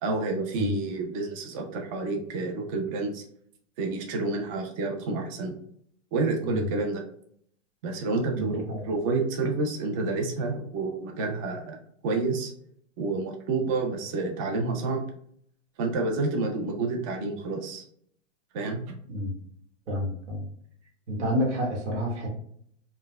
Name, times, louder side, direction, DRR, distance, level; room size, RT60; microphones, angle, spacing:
voice 1, 0.0-3.2 3.8-5.6 6.1-7.0 7.8-11.8 12.0-12.5 13.0-15.1 15.8-17.8 18.5-18.9, right 3 dB, 30° right, 2 dB, 0.5 m, -29 dB
voice 2, 8.3-8.8 19.1-19.4 19.9-20.4 21.1-22.3, equal, 70° right, -1 dB, 1.5 m, -29 dB
4.4 x 2.1 x 2.2 m, 0.67 s
hypercardioid pair, 155°, 36 cm